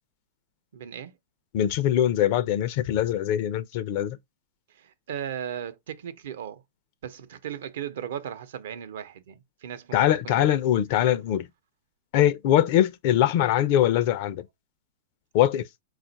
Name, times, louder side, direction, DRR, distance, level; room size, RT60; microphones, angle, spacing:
voice 1, 0.7-1.1 4.7-6.6 7.0-10.0 10.2-10.5, right 9 dB, 75° right, 0.7 m, -37 dB
voice 2, 1.5-4.2 9.9-11.5 12.1-14.4 15.3-15.6, left 11 dB, 55° left, 0.5 m, -22 dB
4.2 x 2.4 x 3.9 m
hypercardioid pair, 120°, 0 cm